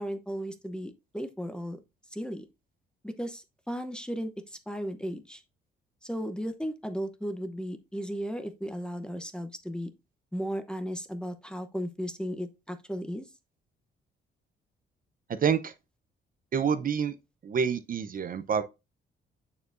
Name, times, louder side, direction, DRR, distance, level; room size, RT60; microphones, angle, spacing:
voice 1, 0.0-1.8 2.1-2.5 3.0-5.4 6.0-9.9 10.3-13.3, equal, 5° left, 0.8 m, -35 dB
voice 2, 15.4-15.7 16.5-17.2 17.4-18.6, right 7 dB, 45° right, 0.7 m, -27 dB
6.9 x 6.8 x 2.6 m
cardioid pair, 90°, 20 cm